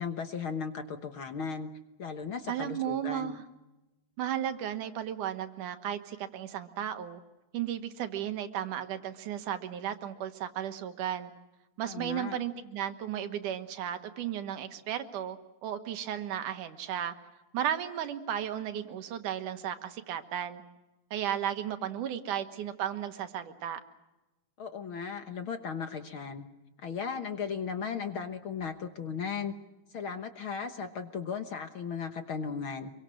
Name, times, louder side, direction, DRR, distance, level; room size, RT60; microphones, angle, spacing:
voice 1, 0.0-1.7 2.0-3.4 11.8-12.4 24.6-26.5 26.8-29.5 29.9-32.9, left 6 dB, 55° left, 7 dB, 1.7 m, -36 dB
voice 2, 2.5-3.4 4.2-7.2 7.5-11.3 11.8-17.1 17.5-20.6 21.1-23.8, right 10 dB, 85° right, 9 dB, 2.9 m, -34 dB
26.5 x 23.0 x 6.4 m, 1.0 s
omnidirectional pair, 3.5 m